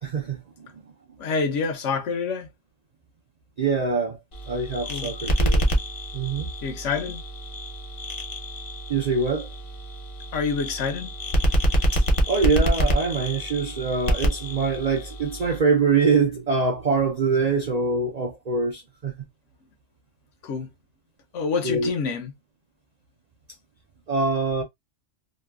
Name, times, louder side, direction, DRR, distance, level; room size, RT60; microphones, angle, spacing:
voice 1, 0.0-0.4 3.6-4.2 4.5-5.7 6.1-6.5 8.9-9.5 11.9-19.1 21.6-21.9 24.1-24.6, right 4 dB, 75° right, 0.3 m, -24 dB
voice 2, 1.2-2.5 4.9-5.1 6.6-7.2 10.3-11.1 20.4-20.7 21.3-22.3, left 5 dB, 70° left, 1.0 m, -27 dB
sound 1, 4.3-15.6, equal, 40° left, 0.5 m, -26 dB
3.0 x 2.2 x 2.2 m
omnidirectional pair, 1.3 m